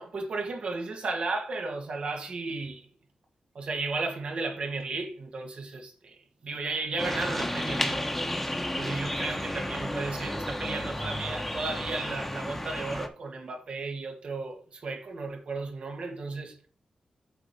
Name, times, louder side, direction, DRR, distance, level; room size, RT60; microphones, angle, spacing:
voice 1, 0.0-2.9 3.5-8.0 8.7-16.6, right 3 dB, 65° right, 1.9 m, -34 dB
sound 1, 7.0-13.1, left 1 dB, 10° left, 1.0 m, -32 dB
7.7 x 4.6 x 5.2 m
wide cardioid pair, 95°, 2 cm